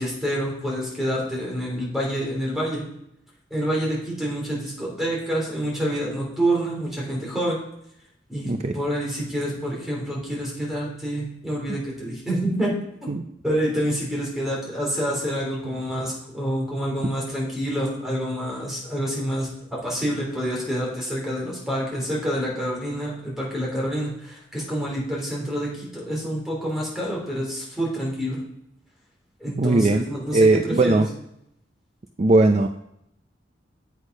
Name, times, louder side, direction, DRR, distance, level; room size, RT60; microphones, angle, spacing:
voice 1, 0.0-2.8 3.5-7.6 8.3-12.7 13.4-28.4 29.4-31.0, equal, ahead, -4 dB, 3.7 m, -27 dB
voice 2, 29.6-30.1 30.3-31.1 32.2-32.7, right 2 dB, 35° right, 6 dB, 0.5 m, -18 dB
8.3 x 8.2 x 5.3 m, 0.77 s
head